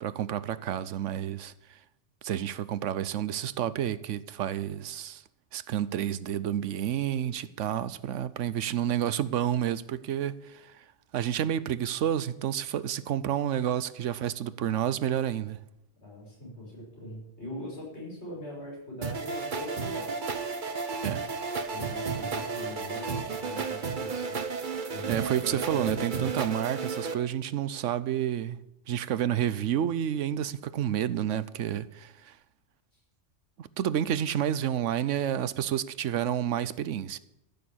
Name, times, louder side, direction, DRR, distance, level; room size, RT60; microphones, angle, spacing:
voice 1, 0.0-1.8 2.2-5.2 5.5-10.8 11.1-15.6 21.0-21.2 25.1-28.6 28.9-32.4 33.6-37.2, right 10 dB, 85° right, 1.0 m, -30 dB
voice 2, 16.0-20.1 21.7-24.4 24.9-26.3, left 1 dB, 60° left, 6.1 m, -42 dB
sound 1, 19.0-27.1, right 5 dB, 45° right, 1.0 m, -33 dB
14.0 x 7.0 x 8.6 m
omnidirectional pair, 1.3 m